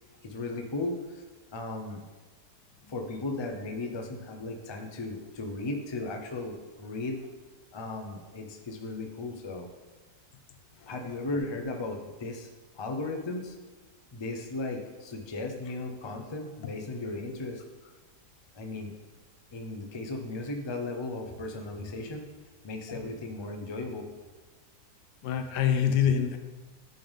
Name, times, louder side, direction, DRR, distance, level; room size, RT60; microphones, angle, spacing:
voice 1, 0.2-1.2 1.5-2.1 2.9-7.2 7.7-9.7 10.9-12.5 12.7-13.6 14.1-17.6 18.6-18.9 19.5-22.3 22.6-24.1, left 2 dB, 40° left, 3 dB, 0.4 m, -36 dB
voice 2, 25.2-26.4, left 8 dB, 85° left, 7 dB, 1.3 m, -25 dB
10.0 x 3.6 x 5.3 m, 1.2 s
omnidirectional pair, 1.8 m